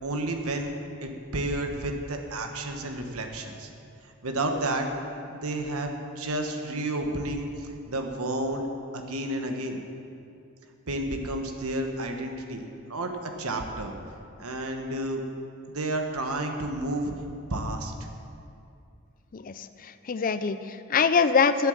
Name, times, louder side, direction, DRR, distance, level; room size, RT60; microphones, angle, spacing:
voice 1, 0.0-3.7 4.2-4.9 5.3-8.6 8.9-9.8 10.9-12.6 12.9-13.9 14.4-15.2 15.7-17.1 17.5-17.9, right 1 dB, 80° right, 4 dB, 1.2 m, -31 dB
voice 2, 19.3-21.7, left 5 dB, 40° left, 12 dB, 0.4 m, -24 dB
11.0 x 8.3 x 7.1 m, 2.5 s
head